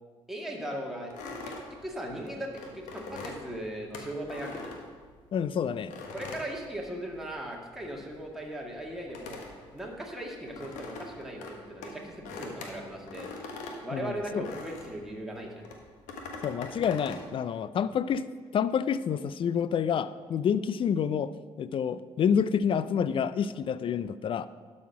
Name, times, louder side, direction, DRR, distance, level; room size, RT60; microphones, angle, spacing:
voice 1, 0.3-1.5 1.8-4.7 6.1-9.4 9.7-13.3 13.8-15.7, right 1 dB, ahead, -2 dB, 1.9 m, -38 dB
sound 1, 1.1-5.4 5.9-7.4 7.6-15.0 15.6-17.3, left 3 dB, 65° left, 1.2 m, -43 dB
voice 2, 5.3-5.9 13.9-14.4 16.4-18.3 18.5-21.3 21.6-24.5, left 7 dB, 40° left, 16 dB, 0.4 m, -28 dB
12.0 x 4.3 x 5.8 m, 1.5 s
hypercardioid pair, 50°, 14 cm